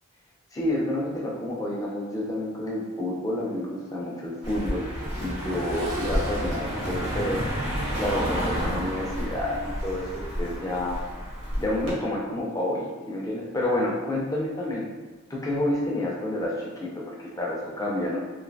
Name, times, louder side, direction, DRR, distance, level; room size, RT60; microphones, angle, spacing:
voice 1, 0.5-4.9 5.2-7.4 8.0-11.0 11.6-14.9 15.3-18.2, left 1 dB, 15° left, -4 dB, 0.5 m, -29 dB
Accelerating revving vroom, 2.1-2.3 2.7-12.6 14.3-14.4, equal, 80° right, 0.6 m, -43 dB
Car passing by, 4.4-11.9, equal, 60° right, 1.0 m, -31 dB
3.1 x 2.6 x 2.6 m, 1.3 s
head